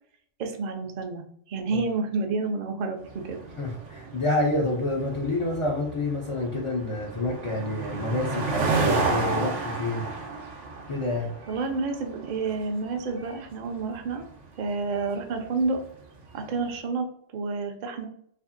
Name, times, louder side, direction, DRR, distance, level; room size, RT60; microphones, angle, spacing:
voice 1, 0.4-3.4 11.5-14.3 14.6-15.8 16.3-18.1, right 3 dB, 60° right, 4 dB, 0.5 m, -29 dB
sound 1, 3.0-16.6, right 3 dB, 80° right, 1.0 m, -32 dB
voice 2, 3.6-10.1 10.9-11.3, left 2 dB, 55° left, -3 dB, 0.3 m, -28 dB
2.7 x 2.5 x 2.5 m, 0.67 s
omnidirectional pair, 1.2 m